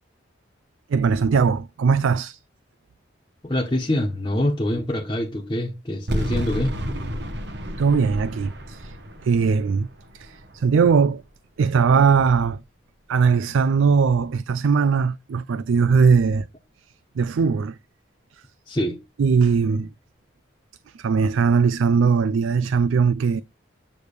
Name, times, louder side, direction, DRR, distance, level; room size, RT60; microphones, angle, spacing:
voice 1, 0.9-2.4 7.8-9.0 9.2-9.9 10.1-11.2 11.6-12.6 13.1-16.5 17.2-17.8 19.2-19.9 20.9-23.4, right 5 dB, 85° right, 0.4 m, -20 dB
voice 2, 3.4-6.8 18.7-19.0, left 1 dB, 25° left, 1.2 m, -25 dB
sound 1, 6.1-11.2, equal, 60° right, 1.1 m, -31 dB
8.7 x 3.2 x 6.6 m
head